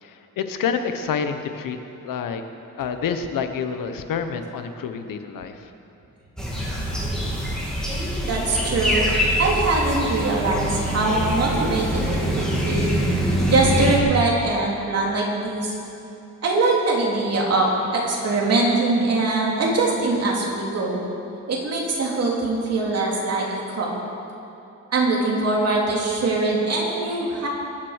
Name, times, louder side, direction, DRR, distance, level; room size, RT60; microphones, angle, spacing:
voice 1, 0.0-2.4 2.8-5.6, left 6 dB, 80° left, 7 dB, 1.1 m, -28 dB
sound 1, 6.4-14.0, equal, ahead, 2.9 m, -24 dB
voice 2, 8.2-9.0 9.4-12.9 13.5-15.7 16.4-21.0 21.5-23.9 24.9-27.5, right 2 dB, 50° right, -3 dB, 3.1 m, -22 dB
23.0 x 7.6 x 6.5 m, 2.9 s
wide cardioid pair, 160°, 33 cm